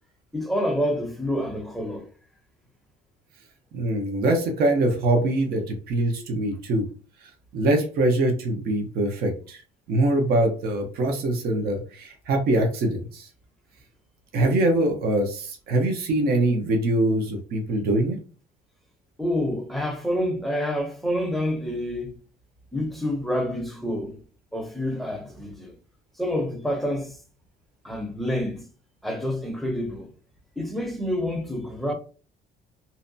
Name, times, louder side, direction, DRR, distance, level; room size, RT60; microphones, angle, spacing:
voice 1, 0.3-2.1 19.2-22.1 22.7-24.2 24.5-25.7 26.2-27.2 27.8-28.6 29.0-30.1 30.6-31.9, equal, ahead, 0.6 m, -28 dB
voice 2, 3.7-6.9 7.5-9.6 9.9-13.3 14.3-18.2, right 1 dB, 65° right, 0.8 m, -23 dB
2.7 x 2.2 x 2.6 m
cardioid pair, 110°, 17 cm